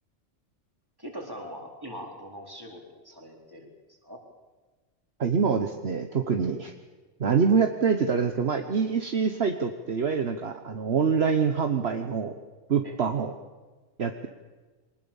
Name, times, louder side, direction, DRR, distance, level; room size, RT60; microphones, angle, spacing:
voice 1, 1.0-3.7 4.0-4.2 12.8-12.9, equal, 15° right, 1 dB, 4.1 m, -41 dB
voice 2, 5.2-6.7 7.2-12.4 12.7-13.3 14.0-14.3, right 6 dB, 55° right, 6 dB, 1.3 m, -25 dB
23.5 x 20.0 x 7.2 m, 1.3 s
omnidirectional pair, 1.3 m